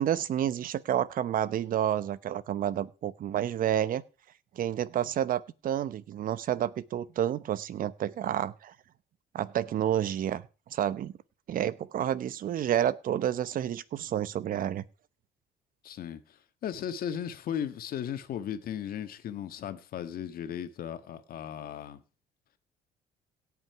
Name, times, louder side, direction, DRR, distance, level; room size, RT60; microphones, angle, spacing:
voice 1, 0.0-4.0 4.5-8.7 9.3-10.4 10.7-11.1 11.5-14.8, right 10 dB, 55° right, 0.9 m, -29 dB
voice 2, 15.8-22.0, left 9 dB, 60° left, 1.7 m, -36 dB
17.0 x 5.9 x 5.8 m
cardioid pair, 110°, 17 cm